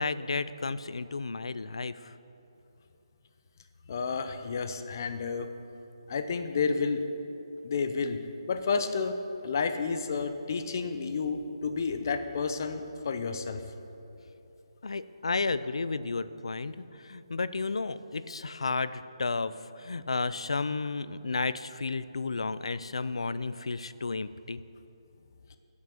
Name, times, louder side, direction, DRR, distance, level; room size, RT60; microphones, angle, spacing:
voice 1, 0.0-2.2 14.8-24.6, left 3 dB, 85° left, 15 dB, 0.4 m, -32 dB
voice 2, 3.9-5.5 6.1-7.0 7.6-8.2 8.5-9.2 9.4-13.6, left 5 dB, 40° left, 8 dB, 0.6 m, -30 dB
7.2 x 6.2 x 7.0 m, 2.9 s
hypercardioid pair, 170°, 3 cm